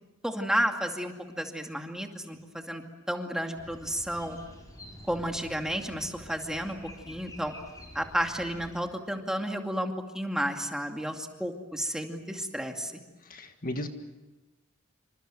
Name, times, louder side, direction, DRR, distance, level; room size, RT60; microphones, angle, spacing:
voice 1, 0.2-2.8 3.1-4.4 5.1-6.8 7.1-7.5 7.9-13.0, equal, 5° right, 3 dB, 2.4 m, -32 dB
sound 1, 3.5-8.8, equal, 15° left, 6.2 m, -48 dB
voice 2, 13.3-13.9, left 1 dB, 45° left, 6 dB, 1.8 m, -35 dB
28.0 x 26.5 x 7.8 m, 1.1 s
head